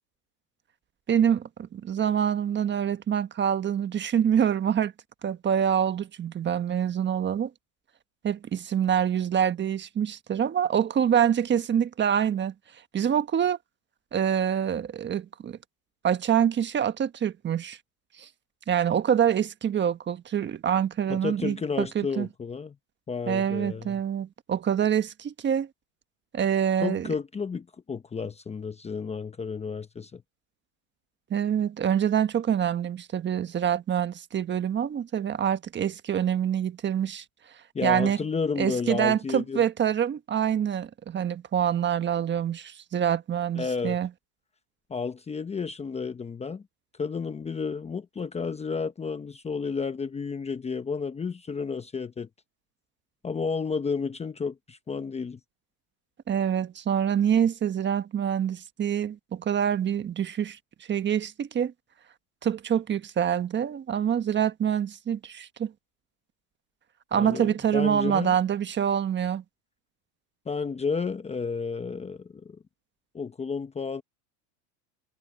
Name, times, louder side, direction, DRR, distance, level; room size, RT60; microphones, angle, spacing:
voice 1, 1.1-4.9 5.2-7.5 8.2-12.5 12.9-13.6 14.1-15.6 16.0-17.8 18.2-18.3 18.7-22.3 23.3-25.7 26.3-27.1 31.3-37.2 37.8-38.2 38.6-44.1 56.3-60.6 60.9-61.7 62.4-65.7 67.1-69.4, right 9 dB, 25° right, 1.4 m, -26 dB
voice 2, 21.1-22.7 23.1-24.0 26.8-30.2 37.7-39.6 43.6-44.0 44.9-46.6 47.0-52.3 53.2-55.4 67.1-68.3 70.5-72.6 73.1-74.0, left 5 dB, 15° left, 1.0 m, -31 dB
supercardioid pair, 125°, 45 cm